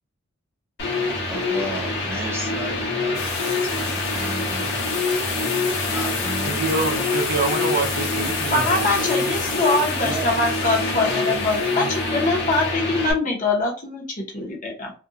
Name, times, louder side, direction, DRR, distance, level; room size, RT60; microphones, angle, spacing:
sound 1, 0.8-13.1, left 2 dB, 60° left, 1.1 m, -26 dB
voice 1, 1.3-4.7 5.9-6.6 10.0-10.3, right 1 dB, 10° right, 0.8 m, -33 dB
sound 2, 3.1-12.6, left 6 dB, 90° left, 0.6 m, -32 dB
voice 2, 6.4-8.9, right 3 dB, 50° right, 0.5 m, -26 dB
voice 3, 8.5-14.9, left 2 dB, 40° left, 0.9 m, -23 dB
2.5 x 2.3 x 2.7 m
head